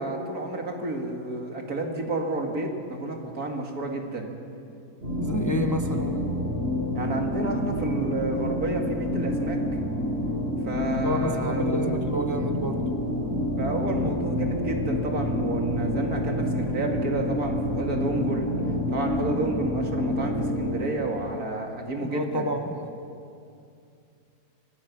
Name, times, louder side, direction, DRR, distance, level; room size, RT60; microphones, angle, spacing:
voice 1, 0.0-4.3 6.9-9.6 10.6-12.0 13.6-18.5 18.9-22.5, right 2 dB, 80° right, 2 dB, 2.7 m, -30 dB
sound 1, 5.0-20.8, left 1 dB, 45° right, 6.7 m, -28 dB
voice 2, 5.2-6.2 11.0-12.8 22.0-22.9, left 1 dB, 15° left, 5 dB, 1.0 m, -29 dB
25.5 x 19.5 x 6.1 m, 2.5 s
omnidirectional pair, 1.5 m